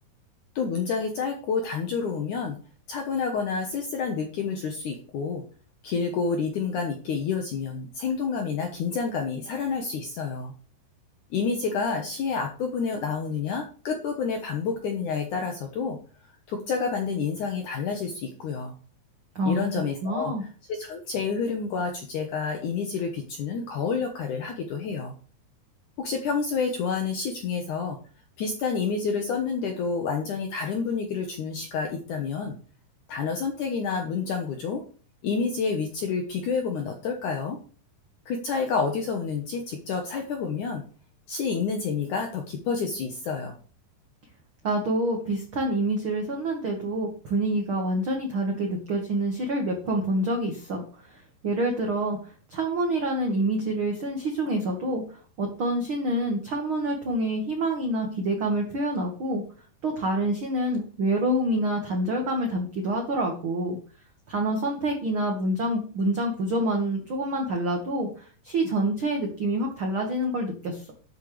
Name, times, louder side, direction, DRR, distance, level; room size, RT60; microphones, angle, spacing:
voice 1, 0.6-2.6 2.9-5.4 5.8-10.5 11.3-16.0 16.5-18.7 19.5-25.1 26.0-28.0 28.4-32.6 33.1-34.8 35.2-37.6 38.3-40.8 41.3-43.6, left 5 dB, 65° left, 3 dB, 2.2 m, -29 dB
voice 2, 19.3-20.4 44.6-52.2 52.5-59.4 59.8-63.8 64.3-70.9, right 1 dB, 55° right, 2 dB, 1.5 m, -27 dB
12.5 x 9.2 x 3.3 m, 0.41 s
omnidirectional pair, 4.7 m